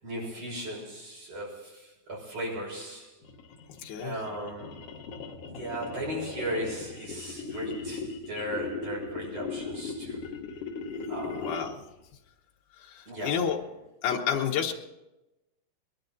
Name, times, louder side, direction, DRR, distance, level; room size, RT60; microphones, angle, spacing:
voice 1, 0.0-3.2 4.0-4.8 5.5-10.3 11.1-11.6 13.1-13.5, right 1 dB, 45° right, -4 dB, 7.2 m, -37 dB
sound 1, 3.2-11.9, left 4 dB, 70° left, 1.5 m, -38 dB
voice 2, 3.8-4.1 11.2-11.8 12.8-13.6 14.0-14.7, left 8 dB, 85° left, -1 dB, 3.1 m, -30 dB
22.0 x 11.5 x 4.0 m, 0.95 s
omnidirectional pair, 4.2 m